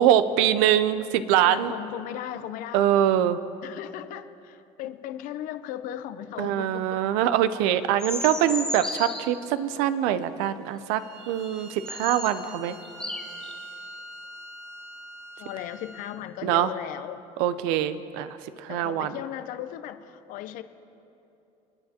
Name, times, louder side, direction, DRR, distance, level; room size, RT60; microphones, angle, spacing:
voice 1, 0.0-1.7 2.7-3.4 6.4-12.7 16.4-16.7 17.4-19.2, right 11 dB, 85° right, 13 dB, 0.6 m, -23 dB
voice 2, 1.4-2.8 3.6-7.1 12.4-13.2 15.4-17.2 18.7-20.6, left 12 dB, 65° left, 11 dB, 0.7 m, -37 dB
sound 1, 8.0-9.3 11.4-11.5 11.8-12.3 12.8-13.5, left 1 dB, 5° left, 2.0 m, -33 dB
Bowed string instrument, 10.9-16.2, right 1 dB, 55° right, 2.6 m, -44 dB
29.0 x 9.9 x 2.9 m, 2.9 s
cardioid pair, 115°, 15 cm